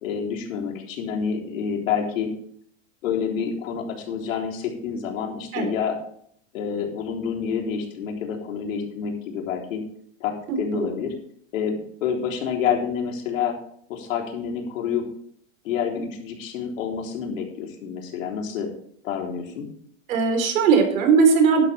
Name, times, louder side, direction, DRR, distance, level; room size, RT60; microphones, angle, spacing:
voice 1, 0.0-2.3 3.0-6.0 6.5-9.8 10.2-11.1 11.5-13.6 13.9-15.0 15.6-18.7 19.0-19.7, left 7 dB, 75° left, 1 dB, 3.7 m, -28 dB
voice 2, 10.5-10.9 20.1-21.6, right 5 dB, 85° right, 4 dB, 3.9 m, -19 dB
12.0 x 11.5 x 3.4 m, 0.63 s
supercardioid pair, 160°, 40 cm